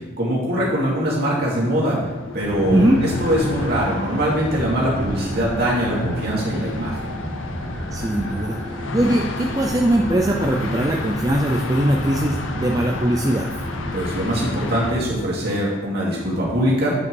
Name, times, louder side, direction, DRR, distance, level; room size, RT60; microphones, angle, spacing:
voice 1, 0.2-2.0 2.3-7.1 13.9-16.9, equal, 50° right, -5 dB, 2.4 m, -22 dB
sound 1, 0.7-14.9, left 3 dB, 70° left, 0.7 m, -32 dB
sound 2, 2.4-15.0, equal, 10° left, 1.6 m, -31 dB
voice 2, 7.9-8.6 8.9-13.5, right 1 dB, 15° right, 1 dB, 0.4 m, -20 dB
8.4 x 5.4 x 4.6 m, 1.2 s
head